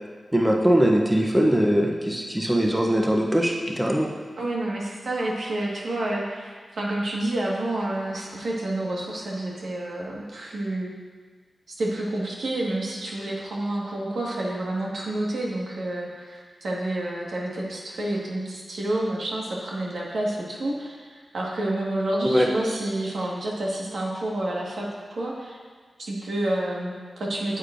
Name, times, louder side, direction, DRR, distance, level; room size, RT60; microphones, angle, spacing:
voice 1, 0.3-4.1 22.2-22.5, equal, 5° right, 0 dB, 0.6 m, -21 dB
voice 2, 4.4-10.9 11.7-25.6 26.0-27.6, right 1 dB, 75° right, -3 dB, 1.5 m, -29 dB
9.5 x 8.3 x 2.5 m, 1.5 s
wide cardioid pair, 135°, 0 cm